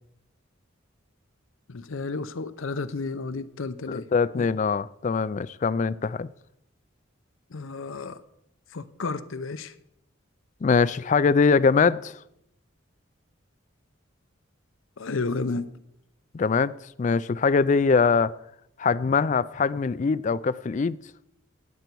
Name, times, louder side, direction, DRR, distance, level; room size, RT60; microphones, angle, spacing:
voice 1, 1.7-4.1 4.3-4.5 7.5-8.2 8.7-9.7 15.0-15.7, left 3 dB, 85° left, 0.7 m, -32 dB
voice 2, 3.9-6.3 10.6-12.1 16.3-16.7 17.0-18.3 18.8-21.0, left 5 dB, 40° left, 0.3 m, -22 dB
18.0 x 8.0 x 4.6 m
head